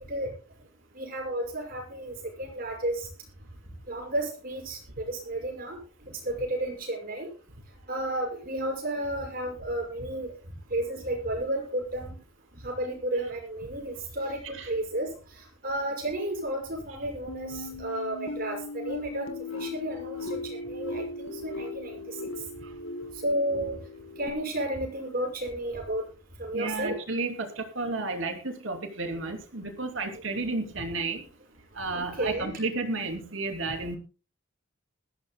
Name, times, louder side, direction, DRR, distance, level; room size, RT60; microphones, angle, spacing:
voice 1, 0.9-3.1 3.9-5.8 6.2-7.3 7.9-10.3 10.7-12.2 12.6-15.1 15.4-22.2 23.2-23.8 24.2-26.0 26.4-27.0 30.1-30.2 31.9-32.5, right 1 dB, 45° right, 1 dB, 6.1 m, -32 dB
sound 1, 17.3-24.3, left 3 dB, 90° left, 1.9 m, -38 dB
voice 2, 26.5-31.2 31.7-34.0, right 3 dB, 75° right, 5 dB, 3.0 m, -32 dB
20.5 x 14.5 x 2.2 m, 0.33 s
head